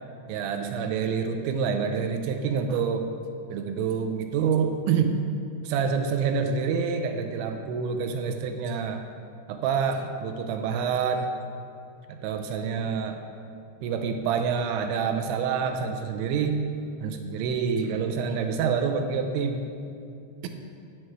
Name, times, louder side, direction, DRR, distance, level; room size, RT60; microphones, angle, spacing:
voice 1, 0.3-3.1 3.5-5.2 5.6-9.0 9.5-11.3 12.1-13.2 13.8-16.6 17.0-19.7 20.4-20.5, right 6 dB, 85° right, 6 dB, 2.9 m, -27 dB
15.5 x 6.2 x 3.1 m, 2.5 s
omnidirectional pair, 5.3 m